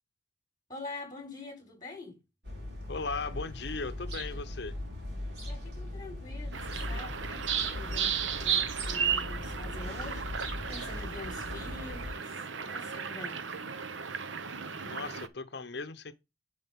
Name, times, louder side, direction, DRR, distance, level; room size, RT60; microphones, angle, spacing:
voice 1, 0.7-2.2 5.5-13.4, left 2 dB, 20° left, 4.1 m, -45 dB
sound 1, 2.4-12.1, left 1 dB, 60° right, 3.8 m, -39 dB
voice 2, 2.9-4.8 14.8-16.1, left 4 dB, 60° left, 0.8 m, -37 dB
sound 2, 6.5-15.3, right 7 dB, 85° right, 0.9 m, -34 dB
10.0 x 5.3 x 3.6 m
head